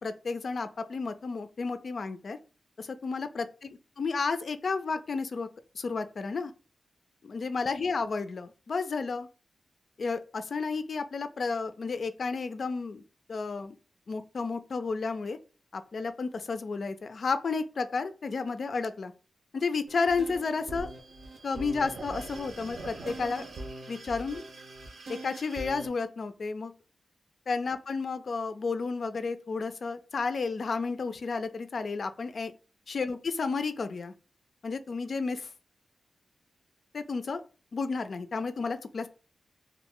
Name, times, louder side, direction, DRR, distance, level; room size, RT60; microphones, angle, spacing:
voice 1, 0.0-2.4 2.8-5.5 5.7-6.5 7.2-9.3 10.0-13.0 13.3-13.8 14.1-15.4 15.7-19.1 19.5-20.9 21.4-23.4 23.9-24.4 25.1-26.7 27.5-32.5 32.9-34.1 34.6-35.5 36.9-37.4 37.7-39.1, left 4 dB, 65° left, 10 dB, 0.3 m, -32 dB
sound 1, 19.9-25.9, right 2 dB, 75° right, 0.6 m, -42 dB
2.3 x 2.1 x 3.6 m, 0.35 s
cardioid pair, 65°, 0 cm